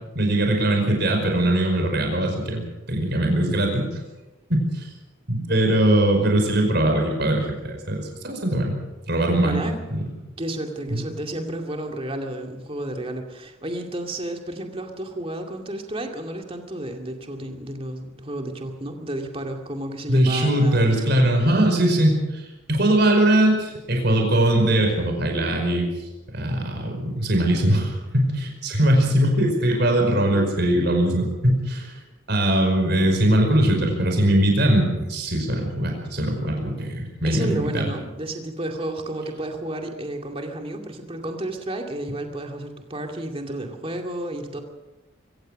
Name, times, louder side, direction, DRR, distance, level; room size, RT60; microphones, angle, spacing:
voice 1, 0.1-3.9 4.5-4.9 5.3-8.8 9.1-9.6 9.9-10.0 10.9-11.0 20.1-22.4 22.7-25.9 26.3-31.9 32.3-37.8, right 1 dB, 50° right, 2 dB, 5.1 m, -21 dB
voice 2, 9.4-9.8 10.4-21.0 21.5-21.7 37.2-44.6, right 1 dB, 25° right, 3 dB, 2.3 m, -32 dB
24.5 x 16.5 x 6.5 m, 1.1 s
head